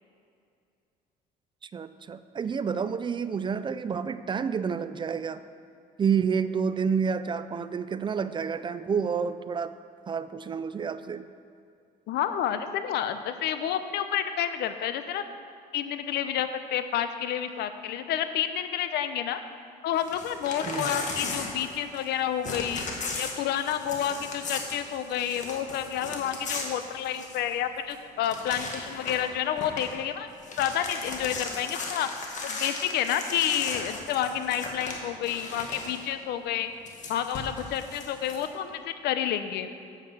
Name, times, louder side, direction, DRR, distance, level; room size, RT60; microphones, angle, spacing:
voice 1, 1.7-5.4 6.0-9.7 10.1-11.3 20.6-20.9, right 6 dB, 30° right, 12 dB, 0.4 m, -29 dB
voice 2, 12.1-15.2 15.7-19.4 19.8-22.9 23.2-30.3 30.6-32.1 32.4-36.7 37.1-39.7, left 10 dB, 75° left, 10 dB, 0.7 m, -29 dB
Crumpling crinkling / Tearing, 20.0-22.1 22.4-27.5 27.9-28.0 28.2-29.3 29.6-29.9 30.3-36.0 36.9-38.4, left 3 dB, 45° left, 1.7 m, -37 dB
8.9 x 8.3 x 5.7 m, 2.4 s
cardioid pair, 110°, 17 cm